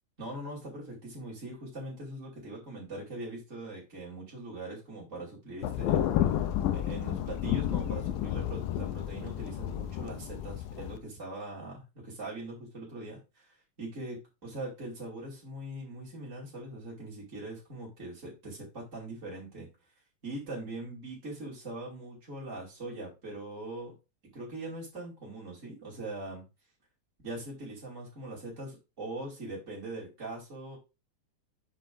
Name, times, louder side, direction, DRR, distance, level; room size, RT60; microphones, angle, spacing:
voice 1, 0.2-6.1 6.3-6.4 6.7-13.5 13.8-14.2 14.4-19.7 20.2-23.9 24.3-26.4 27.2-30.8, right 2 dB, 20° right, -6 dB, 3.0 m, -41 dB
Thunder, 5.6-11.0, left 11 dB, 85° left, 2.5 m, -31 dB
7.4 x 5.6 x 3.9 m, 0.27 s
omnidirectional pair, 4.0 m